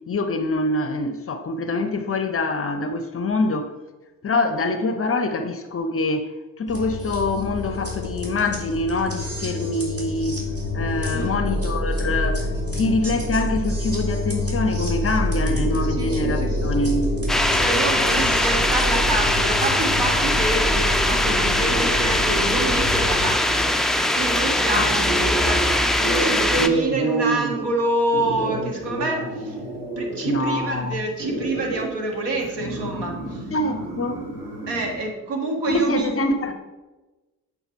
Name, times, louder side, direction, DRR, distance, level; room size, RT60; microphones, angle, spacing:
voice 1, 0.1-3.7 4.2-6.3 6.6-10.4 10.7-17.1 24.7-24.9 30.2-31.0 33.5-34.3 35.7-36.5, left 2 dB, 30° left, 0.6 m, -25 dB
sound 1, 6.7-23.2, left 1 dB, 30° right, 2.5 m, -27 dB
sound 2, 15.4-35.0, right 2 dB, 80° right, 1.8 m, -32 dB
voice 2, 15.8-16.9 17.5-23.8 24.1-25.7 26.0-29.6 30.0-33.5 34.7-36.5, right 2 dB, 60° right, 1.6 m, -27 dB
sound 3, 17.3-26.7, left 1 dB, ahead, 0.3 m, -21 dB
8.0 x 4.0 x 4.4 m
figure-of-eight pair, 45°, 47 cm